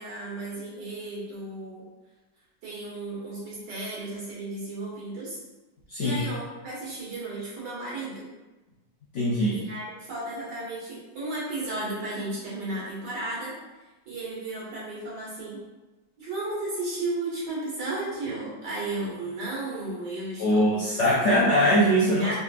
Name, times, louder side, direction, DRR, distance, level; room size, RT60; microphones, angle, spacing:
voice 1, 0.0-1.9 2.6-5.4 6.0-8.3 9.5-13.5 14.1-15.6 16.2-20.8 21.2-21.3 22.0-22.4, right 2 dB, 75° right, -7 dB, 1.9 m, -34 dB
voice 2, 5.9-6.2 9.1-9.6 20.4-22.3, equal, 65° left, -7 dB, 0.7 m, -22 dB
3.8 x 3.2 x 2.4 m, 1.1 s
omnidirectional pair, 1.8 m